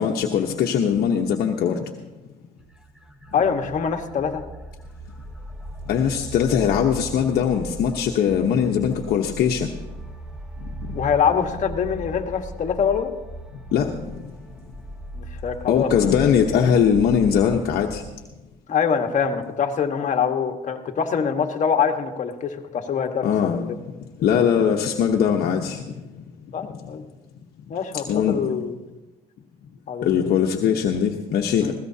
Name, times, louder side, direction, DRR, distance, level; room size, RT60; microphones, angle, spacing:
voice 1, 0.0-1.8 5.9-9.7 10.9-11.0 13.7-13.9 15.7-18.0 23.2-23.6 24.2-25.8 28.1-28.4 30.0-31.7, left 8 dB, 65° left, 1 dB, 1.0 m, -21 dB
sound 1, 2.6-18.2, equal, 5° right, 1.1 m, -38 dB
voice 2, 3.3-4.4 10.9-13.1 15.1-16.1 18.7-23.3 23.5-23.8 24.2-24.3 26.5-27.0 27.7-28.8 29.9-30.3 31.6-31.7, left 7 dB, 45° left, 5 dB, 1.4 m, -24 dB
20.0 x 16.0 x 2.8 m, 1.1 s
cardioid pair, 110°, 17 cm